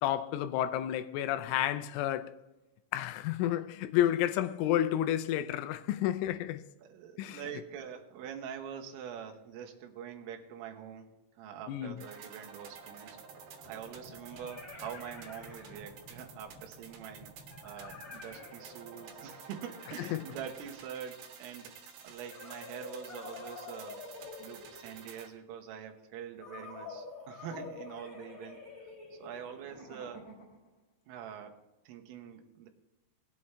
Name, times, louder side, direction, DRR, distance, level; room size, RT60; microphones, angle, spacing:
voice 1, 0.0-2.3 2.9-6.6 7.2-7.4 11.7-12.0 20.1-20.2, left 12 dB, 85° left, 3.0 m, -30 dB
voice 2, 6.8-13.2 13.7-17.3 17.6-24.0 24.4-28.6 29.1-30.2 31.1-31.6 31.9-32.7, right 8 dB, 85° right, 3.8 m, -45 dB
sound 1, 12.0-25.3, right 5 dB, 70° right, 3.6 m, -51 dB
sound 2, 12.4-12.5 13.9-16.3 17.5-21.0 22.2-25.2 26.4-30.7, left 3 dB, 20° left, 2.5 m, -48 dB
19.5 x 8.5 x 3.4 m
omnidirectional pair, 5.8 m